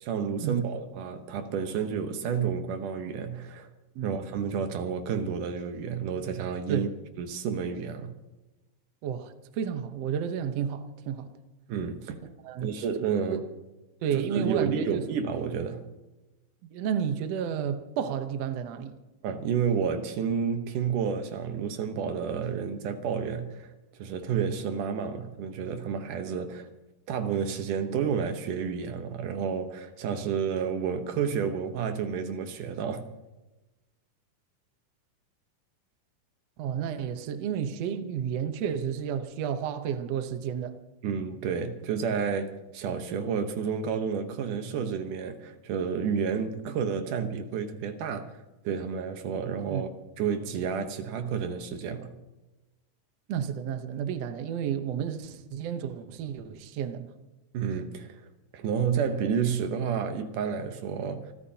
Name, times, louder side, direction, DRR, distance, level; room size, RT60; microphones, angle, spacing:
voice 1, 0.0-3.7 4.0-6.9 7.2-8.2 11.7-12.2 12.6-13.4 14.1-15.8 19.2-23.7 24.0-26.7 27.1-33.1 41.0-48.3 48.6-49.9 50.2-52.1 57.5-58.3 58.5-61.3, right 7 dB, 85° right, 2.7 m, -30 dB
voice 2, 9.0-11.3 12.4-12.8 13.3-13.4 14.0-15.0 16.7-18.9 36.6-40.8 46.7-46.8 49.7-49.9 53.3-57.1, right 8 dB, 65° right, 1.9 m, -31 dB
27.5 x 14.0 x 2.9 m
omnidirectional pair, 3.6 m